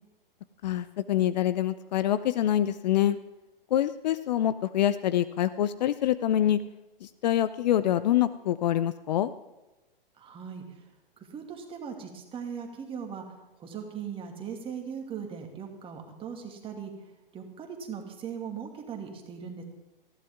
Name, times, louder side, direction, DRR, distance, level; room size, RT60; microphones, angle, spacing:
voice 1, 0.6-3.2 3.7-6.6 7.0-9.3, left 12 dB, 50° left, 14 dB, 0.6 m, -25 dB
voice 2, 10.2-10.6 11.3-13.2 13.6-16.9 17.3-19.6, right 7 dB, 20° right, 3 dB, 2.3 m, -39 dB
19.5 x 15.0 x 3.6 m, 1.0 s
figure-of-eight pair, 115°, 29 cm